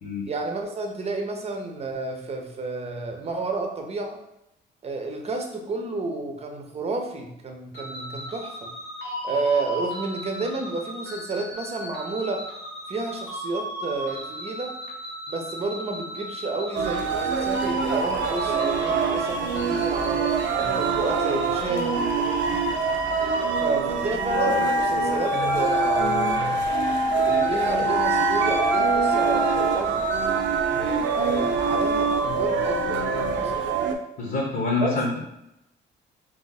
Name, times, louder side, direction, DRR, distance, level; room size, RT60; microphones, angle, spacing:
voice 1, 0.3-4.2 4.8-8.7 9.2-12.4 12.9-14.8 15.3-20.2 20.6-22.6 23.6-26.8 27.1-30.1 30.7-33.7 34.8-35.0, right 3 dB, 30° right, 3 dB, 0.7 m, -31 dB
sound 1, 7.7-23.6, equal, 75° left, 1.2 m, -34 dB
sound 2, 16.7-33.9, right 6 dB, 70° right, 0.5 m, -25 dB
Wind instrument woodwind instrument, 24.2-29.8, left 3 dB, 15° left, 0.3 m, -25 dB
voice 2, 34.2-35.2, left 3 dB, 55° left, -3 dB, 1.0 m, -26 dB
2.9 x 2.6 x 4.0 m, 0.84 s
cardioid pair, 90°, 20 cm